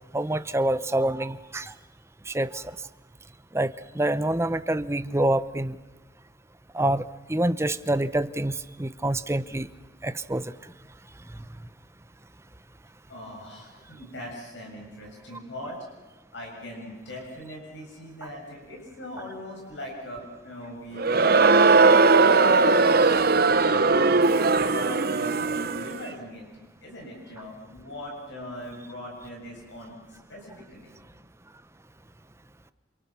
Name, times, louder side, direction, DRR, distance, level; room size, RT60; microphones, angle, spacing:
voice 1, 0.1-1.7 2.3-2.6 3.5-5.8 6.7-9.7 10.0-10.5 24.4-24.5, right 1 dB, 15° right, 14 dB, 0.7 m, -26 dB
voice 2, 13.1-15.8 16.3-21.9 22.3-22.7 23.6-26.4 26.8-30.9, left 1 dB, 65° left, -1 dB, 7.5 m, -40 dB
Crowd, 21.0-26.0, right 3 dB, 50° right, 0.9 m, -19 dB
29.0 x 28.5 x 6.1 m, 1.2 s
head